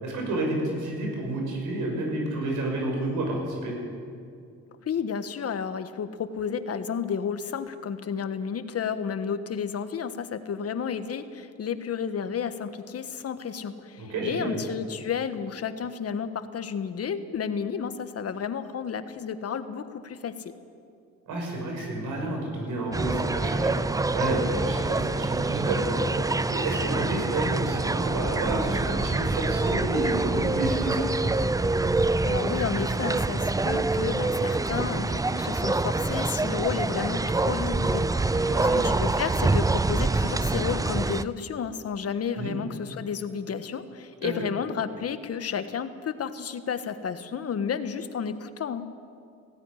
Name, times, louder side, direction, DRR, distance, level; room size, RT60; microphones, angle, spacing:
voice 1, 0.0-3.7 14.0-14.6 21.3-23.7 24.1-26.1 26.5-31.1 38.3-38.9 42.4-42.5 44.2-44.3, right 2 dB, 85° right, 0 dB, 6.2 m, -30 dB
voice 2, 4.8-20.3 32.2-37.2 37.5-48.9, left 7 dB, 50° left, 10 dB, 1.4 m, -32 dB
sound 1, 22.9-41.2, right 3 dB, 10° right, 0.5 m, -26 dB
17.0 x 15.5 x 9.9 m, 2.4 s
cardioid pair, 90°, 30 cm